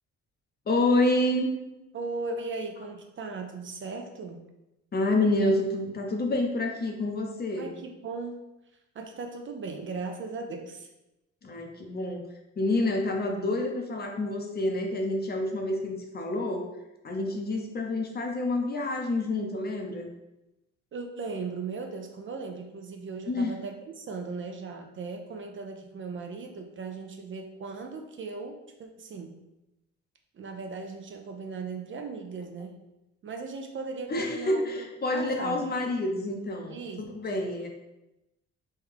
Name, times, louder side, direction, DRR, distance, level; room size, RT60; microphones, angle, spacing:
voice 1, 0.7-1.5 4.9-7.7 11.4-12.2 12.6-16.7 17.0-20.1 23.3-23.6 34.1-36.8 37.1-37.7, left 2 dB, 35° left, 2 dB, 0.6 m, -28 dB
voice 2, 1.9-4.4 7.6-8.4 8.9-10.9 20.9-29.3 30.3-32.8 33.2-35.7 36.7-37.0, right 4 dB, 40° right, 4 dB, 0.4 m, -37 dB
3.2 x 2.3 x 3.5 m, 0.93 s
cardioid pair, 90°, 30 cm